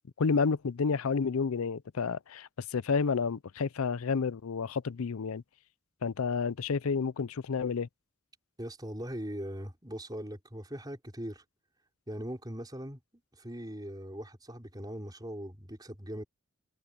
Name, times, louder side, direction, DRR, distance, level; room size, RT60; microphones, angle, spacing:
voice 1, 0.2-5.4 6.0-7.9, left 5 dB, 80° left, 0.5 m, -30 dB
voice 2, 8.6-11.4 12.1-13.0 13.4-16.2, equal, 20° right, 4.8 m, -40 dB
head